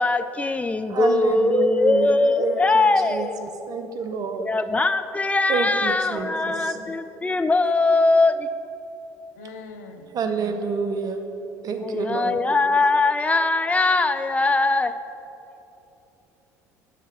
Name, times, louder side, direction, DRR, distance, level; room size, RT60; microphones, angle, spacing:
voice 1, 0.0-3.4 4.4-8.5 11.8-15.0, left 3 dB, 15° left, 11 dB, 0.3 m, -21 dB
voice 2, 0.9-4.5 5.5-7.0 7.6-7.7 10.1-11.2 11.6-12.5, right 4 dB, 45° right, 7 dB, 0.7 m, -28 dB
voice 3, 1.8-3.3 6.1-6.9 9.4-10.1, left 4 dB, 80° left, 5 dB, 0.5 m, -41 dB
8.3 x 3.4 x 5.8 m, 2.9 s
hypercardioid pair, 60°, 9 cm